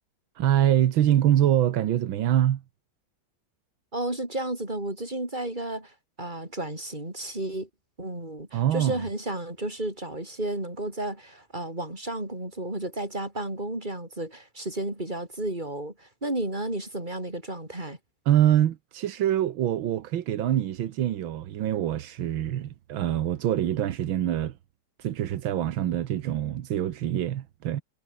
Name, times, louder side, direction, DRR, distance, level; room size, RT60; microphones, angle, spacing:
voice 1, 0.4-2.6 8.5-9.0 18.3-24.5 25.0-27.8, right 11 dB, 85° right, 1.8 m, -24 dB
voice 2, 3.9-7.7 8.0-18.0, right 1 dB, 20° right, 6.1 m, -32 dB
omnidirectional pair, 2.1 m